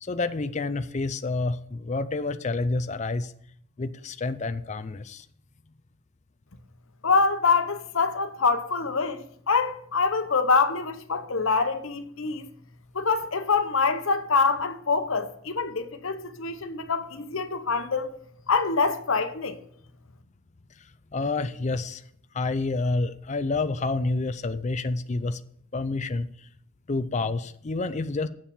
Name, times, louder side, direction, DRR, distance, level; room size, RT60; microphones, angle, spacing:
voice 1, 0.0-3.3 3.8-5.2 20.8-20.9 21.1-22.0 22.3-25.4 25.7-26.3 26.9-28.3, left 3 dB, 30° left, 0.4 m, -28 dB
voice 2, 7.0-12.5 12.9-18.2 18.5-19.6, left 4 dB, 70° left, 0.9 m, -25 dB
7.5 x 7.0 x 7.1 m
head